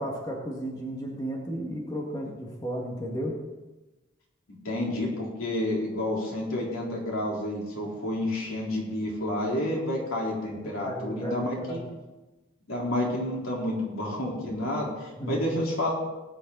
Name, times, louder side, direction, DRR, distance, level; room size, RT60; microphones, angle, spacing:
voice 1, 0.0-3.3 10.8-11.8 15.2-15.4, equal, 20° left, -2 dB, 1.9 m, -33 dB
voice 2, 4.6-11.8 12.7-15.9, left 1 dB, 90° left, -3 dB, 3.9 m, -30 dB
19.0 x 8.9 x 4.0 m, 1.1 s
head